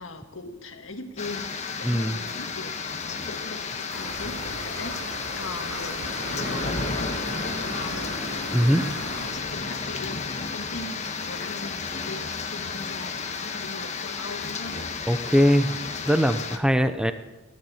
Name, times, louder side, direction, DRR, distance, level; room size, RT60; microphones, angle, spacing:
voice 1, 0.0-14.9, left 2 dB, 65° left, 5 dB, 1.9 m, -40 dB
sound 1, 1.2-16.6, left 4 dB, 35° left, 1.4 m, -32 dB
voice 2, 1.8-2.2 8.5-8.8 15.1-15.8 16.1-17.1, equal, 5° right, 9 dB, 0.7 m, -21 dB
sound 2, 3.9-9.3, right 1 dB, 80° right, 5.1 m, -37 dB
17.5 x 11.0 x 7.2 m, 1.2 s
head